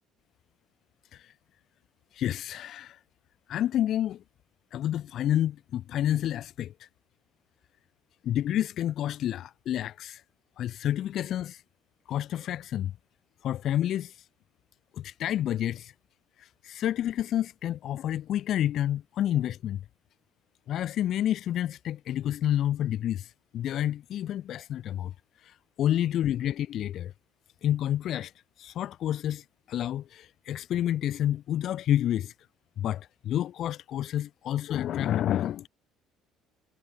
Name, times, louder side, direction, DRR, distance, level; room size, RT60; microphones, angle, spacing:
voice 1, 2.1-3.0 3.5-4.2 4.7-6.9 8.2-10.2 10.6-11.6 12.1-12.9 13.4-14.3 14.9-15.9 16.4-19.8 20.7-27.1 27.6-28.3 28.6-32.3 32.8-35.7, left 11 dB, 55° left, 5.4 m, -29 dB
cardioid pair, 125°, 0 cm